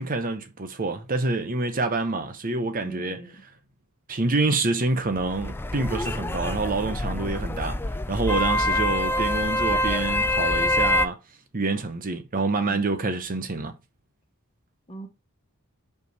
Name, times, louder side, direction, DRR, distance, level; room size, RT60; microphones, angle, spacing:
voice 1, 0.0-3.2 4.1-11.2 11.5-13.8, right 3 dB, 40° right, 0.8 m, -27 dB
voice 2, 2.8-3.4 14.9-15.1, right 2 dB, 25° left, 1.3 m, -40 dB
sound 1, 5.1-11.1, left 1 dB, 10° left, 0.4 m, -25 dB
5.7 x 4.7 x 4.6 m
head